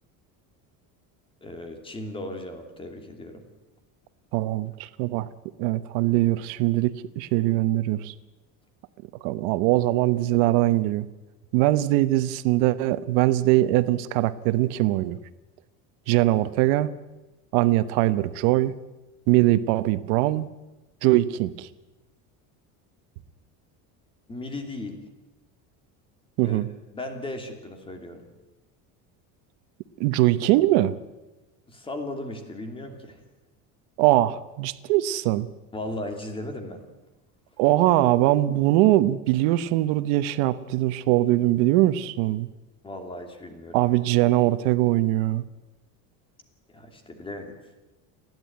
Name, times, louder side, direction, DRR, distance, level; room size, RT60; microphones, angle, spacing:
voice 1, 1.4-3.4 24.3-25.0 26.4-26.6 26.9-28.2 31.7-33.2 35.7-36.8 42.8-43.9 46.7-47.5, left 1 dB, 15° left, 5 dB, 2.7 m, -36 dB
voice 2, 4.3-5.3 5.6-8.1 9.2-11.1 11.5-15.2 16.1-16.9 17.5-18.8 19.3-20.5 21.0-21.7 26.4-26.7 30.0-31.0 34.0-35.5 37.6-42.5 43.7-45.4, right 16 dB, 85° right, 13 dB, 1.1 m, -22 dB
29.5 x 11.0 x 9.4 m, 1.1 s
cardioid pair, 165°, 37 cm